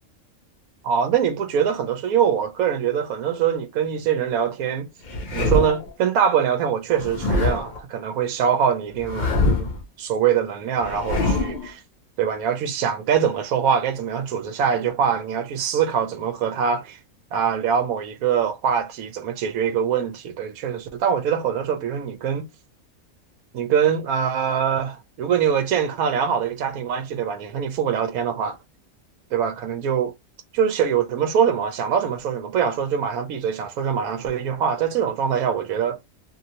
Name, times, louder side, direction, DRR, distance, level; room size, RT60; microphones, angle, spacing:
voice 1, 0.8-4.9 5.3-9.7 10.0-11.8 12.2-17.0 17.3-22.5 23.5-28.6 29.3-30.1 30.5-36.0, right 8 dB, 80° right, 1.1 m, -23 dB
sound 1, 5.0-5.9 7.0-7.8 9.0-9.8 10.8-11.7, left 2 dB, 50° left, 0.6 m, -24 dB
2.8 x 2.6 x 2.7 m
omnidirectional pair, 1.5 m